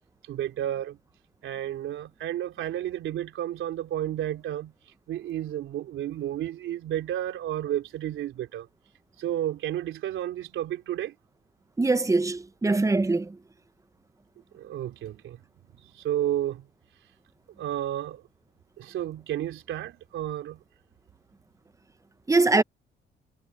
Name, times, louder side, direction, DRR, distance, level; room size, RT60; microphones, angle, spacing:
voice 1, 0.3-1.0 1.4-4.7 5.1-8.7 9.2-11.1 14.5-15.4 16.0-16.6 17.6-18.2 18.8-20.6, right 12 dB, 80° right, 3.5 m, -31 dB
voice 2, 11.8-13.3 22.3-22.6, right 3 dB, 15° right, 0.8 m, -22 dB
cardioid pair, 90°, 20 cm